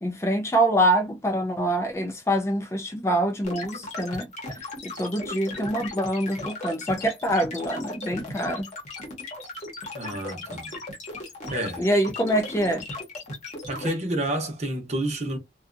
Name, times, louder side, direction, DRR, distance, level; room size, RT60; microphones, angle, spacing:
voice 1, 0.0-4.3 4.8-8.7 11.8-12.8, right 1 dB, 15° left, 0.4 m, -25 dB
sound 1, 3.4-13.9, left 2 dB, 40° left, 0.9 m, -36 dB
voice 2, 9.9-10.8 11.5-11.9 13.7-15.4, right 1 dB, 40° right, 0.8 m, -29 dB
2.6 x 2.3 x 2.5 m
head